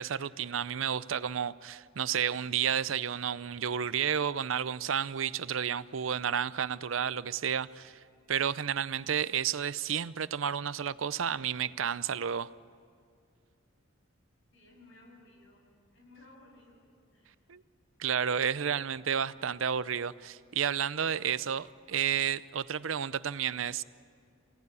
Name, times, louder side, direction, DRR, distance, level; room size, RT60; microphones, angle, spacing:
voice 1, 0.0-8.0 8.3-12.5 17.5-17.6 18.0-23.8, right 8 dB, 80° right, 0.6 m, -31 dB
voice 2, 14.5-15.6 15.9-16.8 17.1-17.3, left 2 dB, 70° left, 7.0 m, -57 dB
27.5 x 17.5 x 9.7 m
head